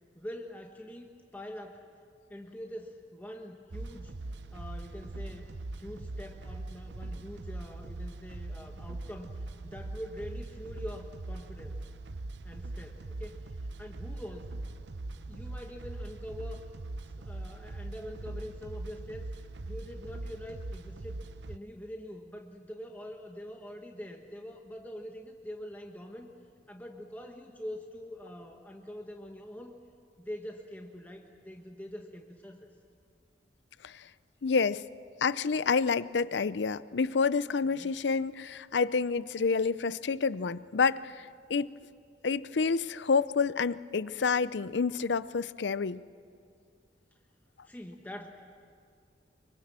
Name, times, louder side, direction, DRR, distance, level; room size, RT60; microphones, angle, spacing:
voice 1, 0.1-1.8 2.3-4.1 4.5-5.5 5.8-11.8 12.4-13.4 13.8-14.6 15.3-16.7 17.0-19.3 19.6-26.3 26.7-29.8 30.2-32.7 37.6-38.0 47.6-48.3, equal, 10° left, 2 dB, 1.2 m, -44 dB
sound 1, 3.7-21.6, right 2 dB, 80° right, 0.7 m, -41 dB
voice 2, 34.4-34.8 35.2-41.7 42.2-46.0, left 5 dB, 75° left, 17 dB, 0.5 m, -28 dB
24.5 x 23.5 x 7.5 m, 2.2 s
head